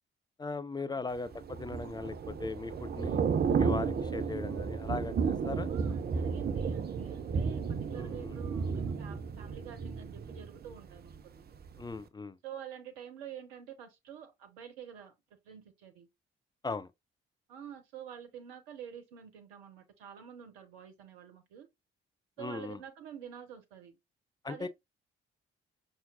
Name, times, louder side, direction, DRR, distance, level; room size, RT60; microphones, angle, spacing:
voice 1, 0.4-3.2 3.6-5.7 7.9-8.4 11.8-12.4 16.6-16.9 22.4-22.8 24.4-24.7, left 3 dB, 15° left, 0.4 m, -38 dB
Thunder / Rain, 1.3-11.2 11.5-11.8, right 6 dB, 30° right, 0.6 m, -33 dB
voice 2, 5.7-11.4 12.4-15.1 15.4-16.1 17.5-21.7 22.4-24.0 24.5-24.7, right 9 dB, 70° right, 0.9 m, -48 dB
5.6 x 2.6 x 2.4 m
figure-of-eight pair, 40°, 31 cm